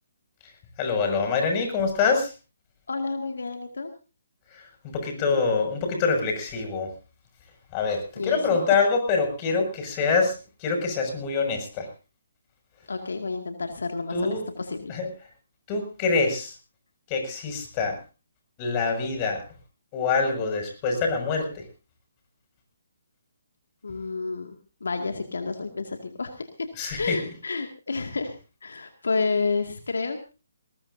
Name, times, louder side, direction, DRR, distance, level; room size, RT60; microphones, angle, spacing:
voice 1, 0.8-2.3 4.5-6.9 7.7-10.3 10.6-11.9 14.1-14.4 14.9-15.1 15.7-16.5 17.1-17.9 18.6-19.4 19.9-21.5 26.8-27.1, left 4 dB, 30° left, 3 dB, 6.4 m, -25 dB
voice 2, 2.9-3.9 8.2-8.8 12.9-15.0 23.8-24.6 24.8-26.7 27.0-30.3, left 4 dB, 75° left, 5 dB, 2.2 m, -30 dB
21.0 x 19.5 x 2.7 m, 0.33 s
figure-of-eight pair, 145°, 0 cm